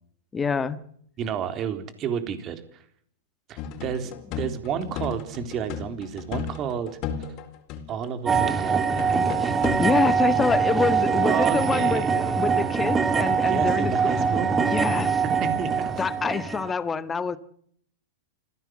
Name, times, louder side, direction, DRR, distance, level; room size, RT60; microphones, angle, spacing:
voice 1, 0.3-0.8 9.4-9.5 9.8-13.9 14.7-15.2 16.0-17.4, left 5 dB, 15° left, 1.7 m, -26 dB
voice 2, 1.2-2.8 3.5-6.9 7.9-9.4 11.2-12.1 13.4-14.5 15.4-15.9, right 8 dB, 35° right, 3.8 m, -31 dB
sound 1, 3.6-7.4 7.7-8.1 8.3-9.8, left 7 dB, 40° left, 4.4 m, -34 dB
sound 2, 8.3-16.7, right 5 dB, 15° right, 2.1 m, -23 dB
27.0 x 16.5 x 7.8 m
hypercardioid pair, 130°, 0 cm